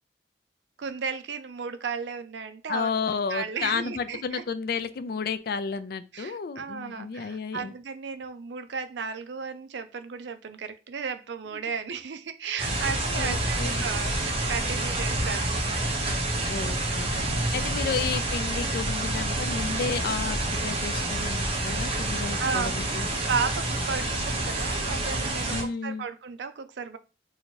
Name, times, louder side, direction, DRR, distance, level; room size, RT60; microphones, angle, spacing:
voice 1, 0.8-2.9 3.3-4.4 6.1-16.3 17.1-17.6 22.4-22.7 23.3-27.0, right 5 dB, 80° right, 10 dB, 0.5 m, -34 dB
voice 2, 2.7-7.7 12.7-13.8 16.5-17.1 17.5-23.1 25.5-26.1, left 5 dB, 55° left, 13 dB, 0.3 m, -32 dB
sound 1, 12.6-25.6, right 2 dB, 30° right, 0.8 m, -28 dB
2.8 x 2.7 x 4.4 m, 0.30 s
head